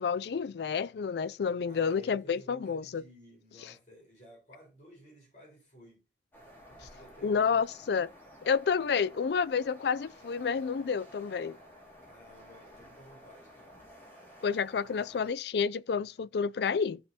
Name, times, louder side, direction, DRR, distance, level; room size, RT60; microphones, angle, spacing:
voice 1, 0.0-3.0 3.6-3.7 7.2-8.1 8.4-11.6 14.4-17.0, left 6 dB, 65° left, 0.4 m, -30 dB
voice 2, 1.7-6.0 6.7-7.6 12.0-13.8 14.8-14.9, equal, 40° left, 4.5 m, -55 dB
sound 1, 6.3-15.3, equal, 10° left, 3.4 m, -53 dB
15.0 x 5.6 x 2.8 m
head